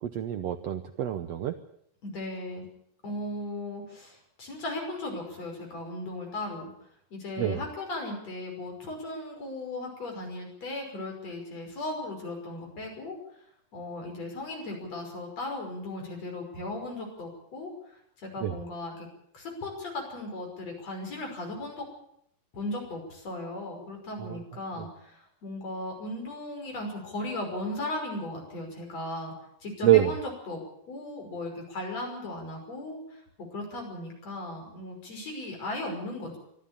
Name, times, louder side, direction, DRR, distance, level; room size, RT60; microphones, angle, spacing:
voice 1, 0.0-1.5 7.4-7.6 18.4-18.5 24.2-24.4 29.8-30.1, right 13 dB, 85° right, 9 dB, 1.4 m, -25 dB
voice 2, 2.0-2.6 3.0-6.7 7.1-13.2 13.7-19.1 19.3-21.8 22.5-29.3 29.6-30.6 30.9-33.2 33.5-36.4, left 2 dB, 45° left, 2 dB, 6.7 m, -37 dB
24.5 x 13.5 x 8.7 m, 0.71 s
omnidirectional pair, 4.2 m